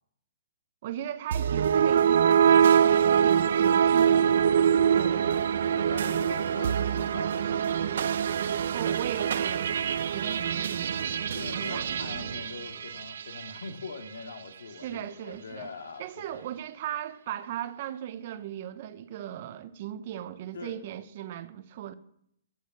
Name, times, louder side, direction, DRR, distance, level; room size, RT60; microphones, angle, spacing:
voice 1, 0.8-4.5 4.9-5.5 8.7-12.1 14.8-15.7 16.0-21.9, right 11 dB, 45° right, 0.9 m, -38 dB
sound 1, 1.3-13.6, right 8 dB, 65° right, 0.6 m, -24 dB
voice 2, 5.7-8.0 11.2-16.5 20.5-20.8, left 4 dB, 85° left, 2.2 m, -42 dB
13.5 x 6.5 x 7.9 m
hypercardioid pair, 150°, 0 cm